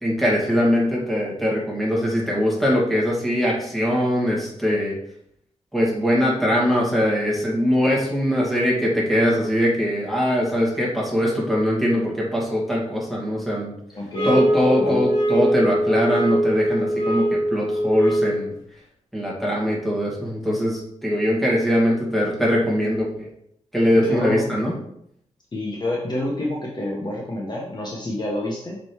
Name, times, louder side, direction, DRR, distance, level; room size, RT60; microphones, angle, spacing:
voice 1, 0.0-5.0 5.7-13.7 14.2-18.5 19.1-23.3 23.7-24.7, equal, ahead, -5 dB, 2.5 m, -21 dB
voice 2, 13.9-14.4 14.8-15.1 23.9-24.5 25.5-28.8, left 1 dB, 35° left, -2 dB, 1.3 m, -28 dB
sound 1, 14.1-18.5, right 1 dB, 60° left, 2.9 m, -22 dB
6.1 x 5.3 x 4.6 m, 0.73 s
wide cardioid pair, 145°, 12 cm